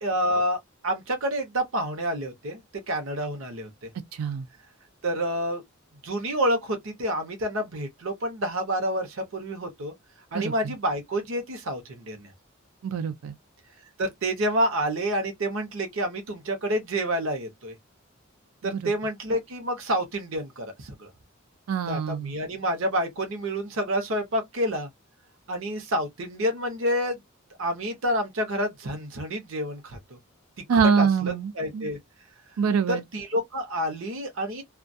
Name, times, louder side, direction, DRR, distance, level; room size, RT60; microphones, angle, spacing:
voice 1, 0.0-3.9 5.0-5.6 6.0-9.9 10.3-12.3 14.0-17.7 18.6-21.1 21.9-24.9 25.5-27.2 27.6-30.2 30.7-32.0 32.9-34.6, equal, 65° right, 0.8 m, -28 dB
voice 2, 4.1-4.4 10.3-10.5 12.8-13.3 18.6-18.8 21.7-22.3 30.7-31.9 32.6-33.0, right 6 dB, 80° right, 0.4 m, -24 dB
2.3 x 2.2 x 2.5 m
head